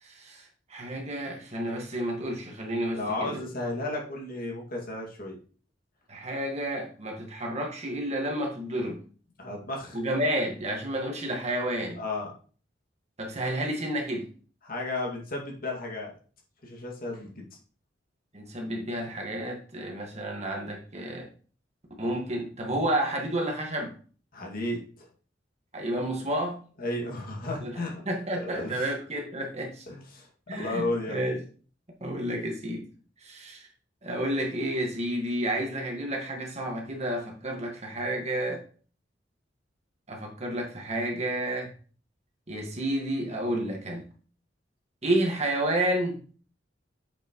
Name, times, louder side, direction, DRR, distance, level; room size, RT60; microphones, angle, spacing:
voice 1, 0.0-3.4 6.1-9.0 9.9-12.0 13.2-14.3 18.3-21.3 22.0-23.9 25.7-26.6 27.6-27.7 28.1-29.8 30.5-31.4 32.0-32.9 33.2-33.7 34.0-38.6 40.1-41.7 42.5-44.1 45.0-46.2, right 1 dB, 35° right, 1 dB, 1.8 m, -30 dB
voice 2, 2.9-5.4 9.4-10.0 12.0-12.3 14.6-16.1 16.6-17.4 24.3-25.1 26.8-28.1 28.3-28.9 29.9-31.2, left 2 dB, 50° left, 0 dB, 2.2 m, -33 dB
7.5 x 6.3 x 3.1 m, 0.40 s
head